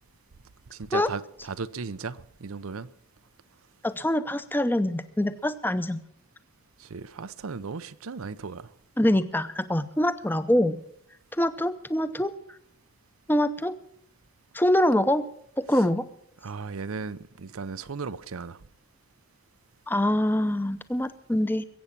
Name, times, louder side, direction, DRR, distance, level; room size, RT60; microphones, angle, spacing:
voice 1, 0.7-2.9 6.8-8.7 16.4-18.6, right 4 dB, 80° right, 0.7 m, -36 dB
voice 2, 3.8-6.0 9.0-10.8 11.4-12.3 13.3-13.7 14.5-15.2 15.6-16.1 19.9-21.6, left 1 dB, 10° left, 0.7 m, -24 dB
21.5 x 8.6 x 5.9 m
head